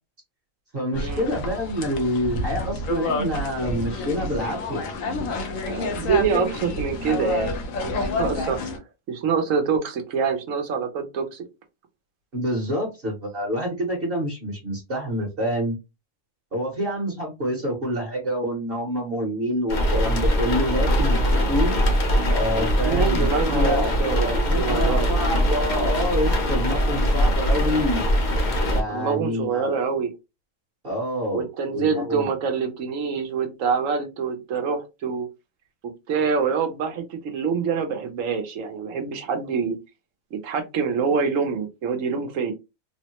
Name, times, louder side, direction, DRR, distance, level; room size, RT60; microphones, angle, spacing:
voice 1, 0.7-4.8 12.3-15.8 16.5-21.7 22.3-28.0 28.7-29.7 30.8-31.5 31.7-32.3, equal, 45° right, 1.1 m, -27 dB
sound 1, 0.9-8.8, left 2 dB, 75° left, 1.1 m, -29 dB
voice 2, 5.7-7.6 7.8-8.6 9.1-11.4 22.8-25.1 28.9-30.1 31.3-35.3 35.8-39.8 40.3-42.5, right 5 dB, 75° right, 1.1 m, -25 dB
sound 2, 19.7-28.8, equal, 45° left, 0.7 m, -22 dB
3.4 x 2.1 x 2.8 m
omnidirectional pair, 1.4 m